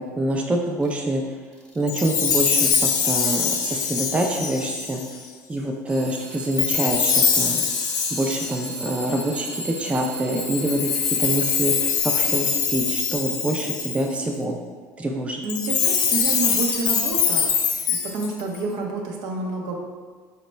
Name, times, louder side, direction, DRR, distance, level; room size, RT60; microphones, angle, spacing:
voice 1, 0.2-1.2 1.8-5.0 5.5-7.7 8.1-14.6 15.0-15.4, right 1 dB, 15° right, 1 dB, 0.4 m, -26 dB
Alarm / Clock, 0.8-1.0 1.5-2.0 2.5-2.9 3.8-3.9 5.9-12.3, right 2 dB, 5° left, 0.7 m, -36 dB
Chime, 1.9-5.2 6.6-9.4 10.4-14.2 15.4-18.6, left 7 dB, 60° left, 0.4 m, -23 dB
voice 2, 15.4-17.6 17.9-19.8, right 3 dB, 60° right, 1 dB, 0.6 m, -29 dB
4.1 x 2.1 x 3.1 m, 1.5 s
hypercardioid pair, 75°, 8 cm